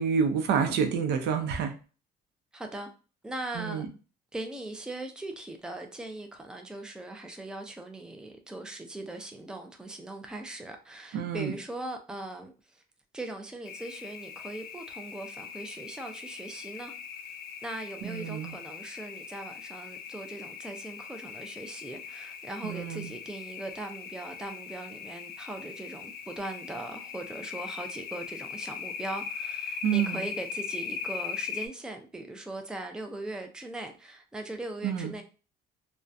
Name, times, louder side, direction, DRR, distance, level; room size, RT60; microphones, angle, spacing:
voice 1, 0.0-1.7 3.5-3.9 11.1-11.6 18.0-18.5 22.6-23.1 29.8-30.3 34.8-35.1, right 7 dB, 80° right, 0.5 m, -28 dB
voice 2, 2.5-2.9 3.2-3.8 4.3-12.8 13.1-16.9 17.6-35.2, right 2 dB, 5° right, 0.4 m, -40 dB
sound 1, 13.7-31.7, left 7 dB, 65° left, 0.4 m, -40 dB
2.5 x 2.1 x 2.3 m
cardioid pair, 110°, 17 cm